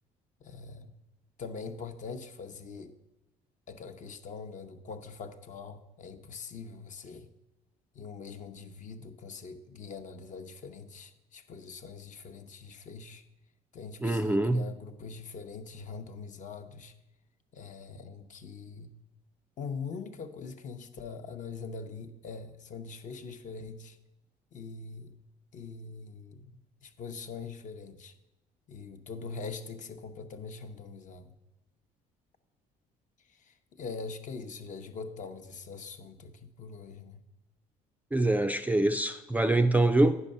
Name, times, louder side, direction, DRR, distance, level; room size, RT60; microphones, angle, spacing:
voice 1, 0.4-0.9 1.4-3.0 3.7-7.3 7.9-13.2 13.7-16.9 17.5-18.9 19.6-24.0 24.5-25.1 25.5-28.1 28.7-31.3 33.3-37.2, left 4 dB, 50° left, 0.7 m, -43 dB
voice 2, 14.0-14.7 38.1-40.2, right 2 dB, 10° right, 0.3 m, -25 dB
9.8 x 5.5 x 5.3 m
cardioid pair, 110°, 17 cm